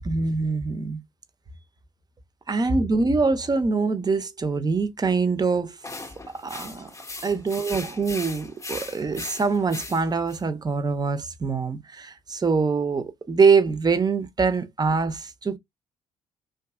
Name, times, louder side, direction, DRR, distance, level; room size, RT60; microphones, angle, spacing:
voice 1, 0.0-1.0 2.5-5.8 6.3-6.9 7.2-15.6, right 4 dB, 25° right, 0.5 m, -24 dB
sound 1, 5.8-10.4, left 2 dB, 20° left, 0.6 m, -38 dB
2.5 x 2.4 x 2.3 m
hypercardioid pair, 45°, 17 cm